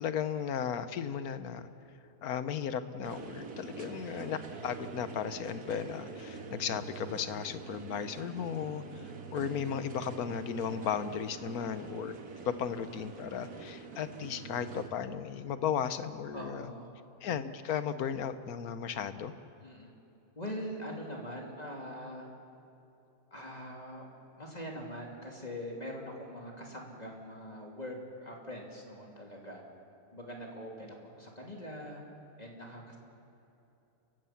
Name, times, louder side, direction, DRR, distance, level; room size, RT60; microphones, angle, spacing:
voice 1, 0.0-1.7 2.2-8.8 9.3-12.1 12.4-16.6 17.2-19.3, left 8 dB, 70° left, 12 dB, 1.3 m, -35 dB
sound 1, 3.0-14.9, right 4 dB, 70° right, 1.9 m, -45 dB
voice 2, 3.7-4.0 11.3-11.7 16.3-16.9 19.6-19.9 20.4-22.3 23.3-24.1 24.4-29.6 30.1-32.0 32.4-33.0, equal, 25° left, -1 dB, 2.8 m, -43 dB
30.0 x 15.5 x 5.9 m, 2.9 s
omnidirectional pair, 1.7 m